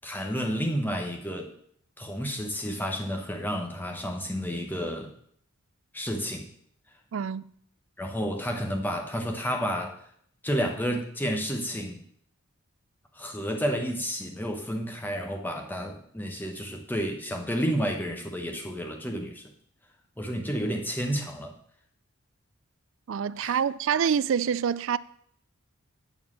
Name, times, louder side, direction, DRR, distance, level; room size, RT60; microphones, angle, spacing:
voice 1, 0.0-1.5 2.0-5.1 5.9-6.4 8.0-10.0 10.4-12.0 13.2-19.5 20.2-21.5 23.4-23.6, equal, 10° left, 1.0 m, -31 dB
voice 2, 7.1-7.5 23.1-25.0, right 7 dB, 60° right, 0.3 m, -26 dB
9.1 x 4.4 x 7.3 m
head